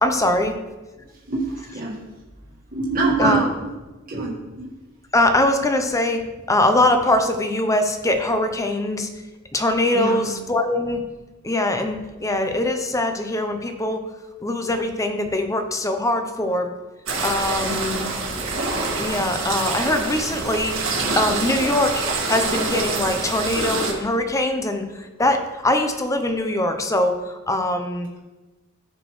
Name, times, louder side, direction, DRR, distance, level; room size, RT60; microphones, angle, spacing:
voice 1, 0.0-0.6 3.2-3.4 5.1-9.1 9.5-11.0 11.4-14.1 14.4-16.7 17.2-18.1 19.0-20.8 21.2-22.0 22.3-28.1, left 1 dB, 15° left, 6 dB, 0.7 m, -22 dB
voice 2, 1.3-2.0 2.7-3.7 4.1-4.7 9.9-10.3 17.7-18.1, right 2 dB, 45° right, -5 dB, 1.7 m, -25 dB
sound 1, 17.1-23.9, right 3 dB, 75° right, 1.9 m, -26 dB
14.5 x 5.0 x 3.2 m, 1.2 s
head